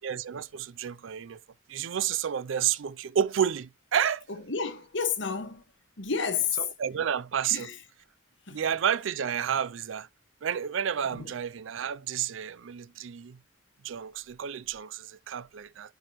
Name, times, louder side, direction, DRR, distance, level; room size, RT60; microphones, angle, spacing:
voice 1, 0.0-1.4 1.7-4.3 6.6-7.7 8.5-10.1 10.4-13.4 13.8-15.9, right 8 dB, 75° right, 0.4 m, -30 dB
voice 2, 4.3-5.6 6.0-6.7 7.5-7.8 8.5-8.6 11.1-11.3, left 6 dB, 70° left, 1.5 m, -31 dB
10.0 x 4.7 x 3.0 m
head